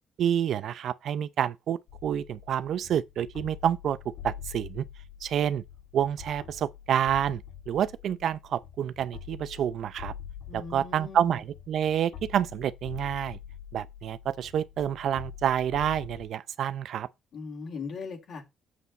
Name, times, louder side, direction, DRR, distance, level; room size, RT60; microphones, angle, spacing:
voice 1, 0.2-4.0 4.2-4.8 5.2-5.6 5.9-7.4 7.7-10.1 10.5-13.4 13.7-17.1, right 9 dB, 70° right, 0.6 m, -28 dB
sound 1, 1.9-16.3, left 9 dB, 80° left, 1.9 m, -45 dB
voice 2, 10.5-11.4 17.3-18.4, left 5 dB, 65° left, 2.8 m, -39 dB
7.7 x 5.9 x 4.0 m
cardioid pair, 90°, 0 cm